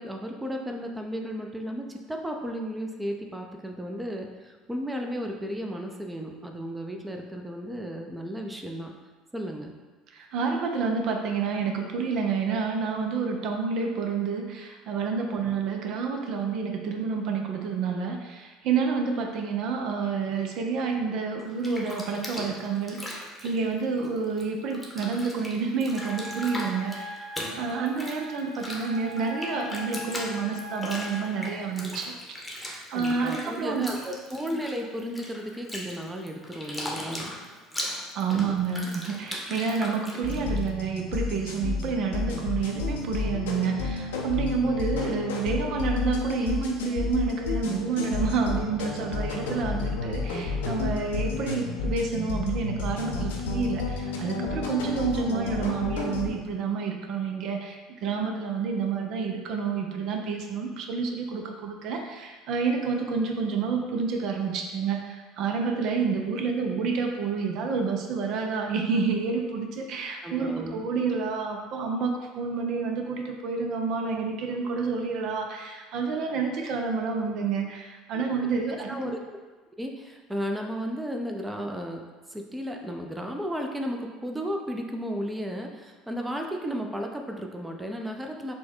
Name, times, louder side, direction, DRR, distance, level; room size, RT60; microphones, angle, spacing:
voice 1, 0.0-8.9 9.3-9.7 32.9-37.3 38.3-38.5 49.7-49.9 70.2-70.9 78.1-78.2 78.9-79.2 79.8-82.0 82.3-88.5, equal, 10° right, 3 dB, 0.5 m, -34 dB
voice 2, 10.1-33.9 38.1-79.1, right 5 dB, 60° right, 3 dB, 0.5 m, -29 dB
Bathtub (filling or washing), 21.4-24.4 24.7-40.7, left 1 dB, 10° left, 0.9 m, -39 dB
Wind instrument woodwind instrument, 25.9-31.3, left 2 dB, 30° right, 1.0 m, -41 dB
sound 1, 40.2-56.3, left 4 dB, 85° left, 0.6 m, -31 dB
4.3 x 2.2 x 4.4 m, 1.3 s
hypercardioid pair, 80°, 0 cm